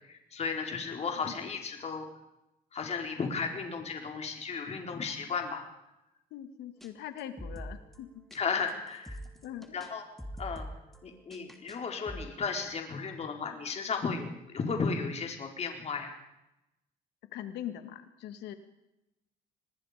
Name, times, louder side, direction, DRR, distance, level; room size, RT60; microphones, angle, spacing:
voice 1, 0.0-2.1 2.7-5.6 8.3-9.2 9.7-10.0 10.4-10.6 11.0-16.1, left 5 dB, 40° left, 3 dB, 4.5 m, -34 dB
voice 2, 6.3-8.2 9.4-9.8 17.3-18.5, left 11 dB, 85° left, 8 dB, 2.3 m, -42 dB
sound 1, 6.8-6.9 7.2-8.4 8.7-9.9 10.2-11.8 12.1-12.6, equal, ahead, 3.0 m, -45 dB
26.5 x 20.5 x 5.2 m, 0.91 s
cardioid pair, 110°, 17 cm